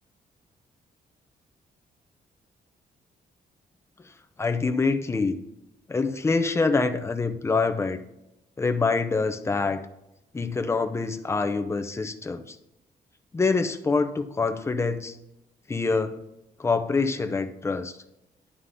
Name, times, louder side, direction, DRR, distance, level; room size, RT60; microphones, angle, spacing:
voice 1, 4.4-5.4 5.9-8.0 8.6-9.8 10.3-12.6 13.3-15.2 15.7-16.2 16.6-18.0, left 4 dB, 15° left, 7 dB, 0.6 m, -25 dB
11.0 x 3.8 x 6.8 m, 0.86 s
wide cardioid pair, 180°, 16 cm